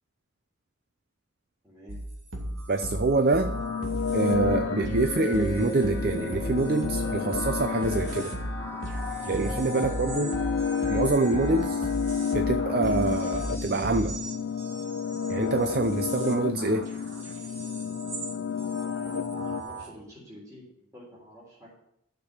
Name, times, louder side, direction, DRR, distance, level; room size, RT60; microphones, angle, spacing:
voice 1, 1.6-2.0 3.2-3.3 19.4-21.7, equal, 15° right, -6 dB, 3.6 m, -48 dB
sound 1, 1.9-18.3 18.6-19.9, right 1 dB, 85° right, 3.0 m, -36 dB
voice 2, 2.7-3.5 4.1-8.3 9.3-10.3 10.9-11.9 12.3-14.2 15.3-16.9, right 2 dB, 50° right, 10 dB, 0.6 m, -26 dB
sound 2, 3.4-19.6, left 6 dB, 65° left, 0.5 m, -31 dB
sound 3, 4.4-13.9, left 1 dB, 15° left, 2.5 m, -39 dB
12.5 x 6.9 x 6.7 m, 0.77 s
head